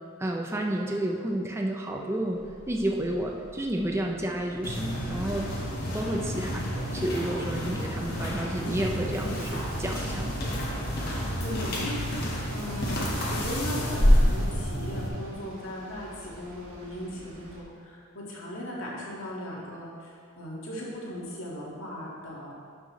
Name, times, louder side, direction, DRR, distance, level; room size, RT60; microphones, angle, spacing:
voice 1, 0.2-5.5 5.9-10.4, right 1 dB, 10° right, 0 dB, 0.5 m, -31 dB
Bus, 2.3-17.6, equal, 90° right, 1.3 m, -44 dB
sound 1, 4.6-15.1, equal, 45° left, 1.4 m, -28 dB
voice 2, 6.0-6.4 11.4-12.0 12.5-22.5, equal, 70° left, -4 dB, 1.8 m, -38 dB
11.5 x 5.5 x 3.1 m, 2.3 s
head